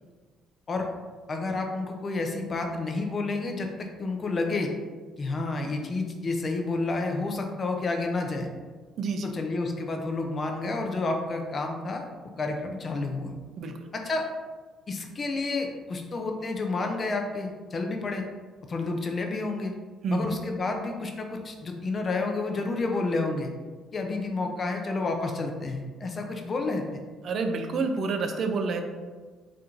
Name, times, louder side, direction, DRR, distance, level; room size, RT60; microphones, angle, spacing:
voice 1, 1.3-4.7 5.2-8.5 9.2-12.0 12.4-13.3 13.9-14.3 14.9-18.3 18.7-19.7 20.1-23.5 23.9-27.0, left 3 dB, 30° left, 3 dB, 0.5 m, -30 dB
voice 2, 9.0-9.3 13.6-13.8 20.0-20.3 27.2-28.8, right 4 dB, 45° right, 5 dB, 0.4 m, -28 dB
4.3 x 2.5 x 3.7 m, 1.4 s
cardioid pair, 155°, 0 cm